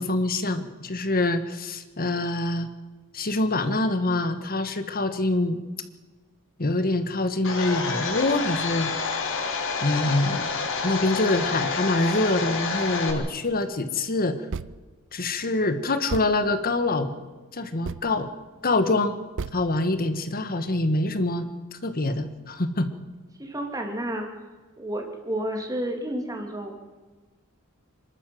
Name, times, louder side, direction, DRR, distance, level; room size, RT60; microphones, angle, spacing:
voice 1, 0.0-2.7 3.1-5.6 6.6-8.9 9.8-10.5 10.8-14.4 15.1-17.1 17.5-18.3 18.6-19.2 19.5-22.9, left 2 dB, 45° left, 9 dB, 1.5 m, -25 dB
Domestic sounds home sounds, 7.4-13.1, left 4 dB, 60° left, 3.4 m, -28 dB
sound 1, 14.5-14.9 15.4-15.5 16.1-16.5 17.8-18.1 19.4-19.6, right 5 dB, 60° right, 0.6 m, -34 dB
voice 2, 23.4-24.3 24.8-26.8, right 1 dB, 15° right, 2 dB, 3.0 m, -31 dB
27.0 x 12.5 x 7.9 m, 1.3 s
head